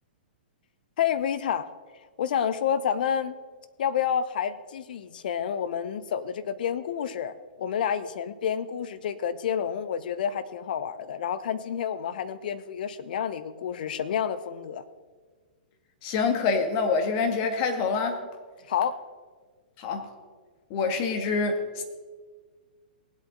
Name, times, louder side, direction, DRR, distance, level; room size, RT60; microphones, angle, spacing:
voice 1, 1.0-1.7 2.2-3.3 3.8-14.8 18.7-19.0, left 8 dB, 60° left, 14 dB, 0.8 m, -29 dB
voice 2, 16.0-18.2 19.8-20.1 20.7-21.8, left 4 dB, 40° left, 5 dB, 1.9 m, -26 dB
18.5 x 8.3 x 3.9 m, 1.5 s
hypercardioid pair, 115°, 5 cm